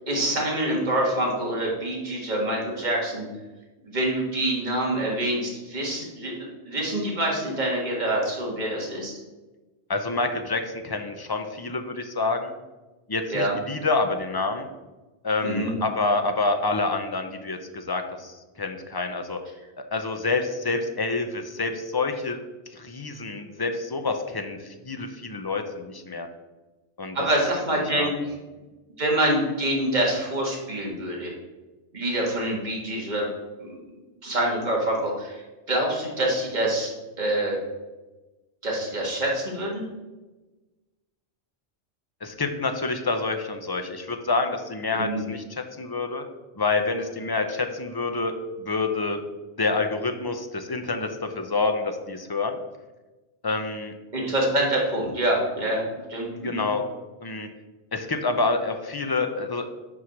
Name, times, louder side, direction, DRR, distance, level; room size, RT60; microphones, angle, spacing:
voice 1, 0.1-3.2 3.8-6.3 6.6-9.2 13.3-13.5 15.4-15.8 27.1-28.1 29.0-31.3 31.9-33.3 33.6-33.8 34.2-35.4 35.7-36.9 37.2-37.6 38.6-39.8 44.9-45.2 54.1-55.8 56.1-56.6, right 1 dB, 45° right, -3 dB, 1.9 m, -26 dB
voice 2, 9.9-12.5 13.1-14.7 15.2-19.4 19.9-22.4 22.7-26.3 27.0-27.2 27.9-28.1 42.2-46.2 46.6-48.3 48.6-49.2 49.6-52.5 53.4-53.9 56.3-56.9 57.2-57.5 57.9-59.7, left 3 dB, 30° left, 6 dB, 0.5 m, -27 dB
6.1 x 4.7 x 5.9 m, 1.2 s
omnidirectional pair, 1.1 m